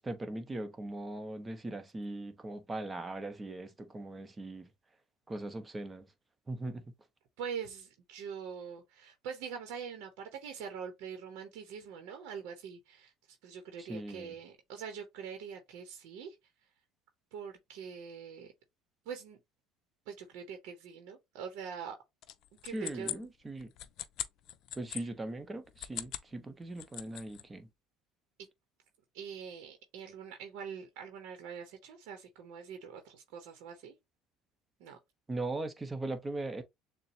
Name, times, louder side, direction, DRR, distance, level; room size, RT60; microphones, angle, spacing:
voice 1, 0.0-4.7 5.3-6.0 6.5-6.8 13.8-14.3 22.7-23.7 24.8-27.7 35.3-36.6, right 2 dB, 20° right, 1.0 m, -39 dB
voice 2, 7.4-16.4 17.3-18.5 19.1-19.4 20.1-22.0 22.6-23.3 24.9-25.1 29.1-33.9 34.8-35.0, right 7 dB, 75° right, 0.9 m, -44 dB
sound 1, 22.2-25.0 25.7-26.3 26.6-27.4, left 11 dB, 60° left, 0.5 m, -41 dB
6.7 x 2.2 x 2.8 m
supercardioid pair, 90°, 0 cm